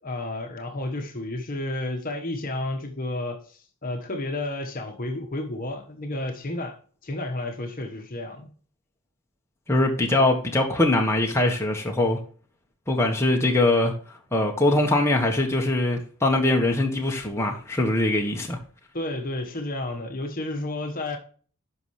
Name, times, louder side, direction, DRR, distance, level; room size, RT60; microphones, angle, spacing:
voice 1, 0.0-6.8 7.0-8.5 18.9-21.2, left 2 dB, 40° left, 1.2 m, -31 dB
voice 2, 9.7-12.2 12.9-13.9 14.3-18.6, left 2 dB, 10° left, 1.3 m, -22 dB
11.0 x 5.6 x 3.2 m
head